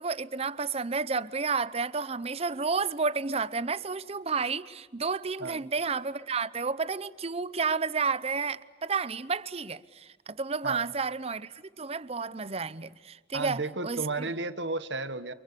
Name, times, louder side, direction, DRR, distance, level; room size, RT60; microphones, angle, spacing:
voice 1, 0.0-14.0, right 4 dB, 35° right, 0.8 m, -31 dB
voice 2, 10.6-10.9 13.3-15.3, right 3 dB, 90° right, 1.5 m, -33 dB
29.5 x 28.5 x 6.9 m
head